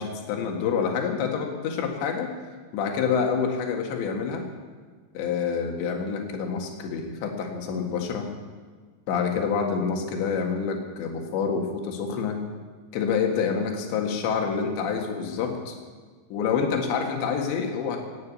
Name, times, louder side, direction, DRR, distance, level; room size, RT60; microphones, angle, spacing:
voice 1, 0.0-2.4 2.7-4.5 5.2-8.3 9.1-12.4 12.9-15.8 16.3-18.0, left 6 dB, 70° left, 2 dB, 3.9 m, -27 dB
18.5 x 9.5 x 8.3 m, 1.5 s
omnidirectional pair, 5.6 m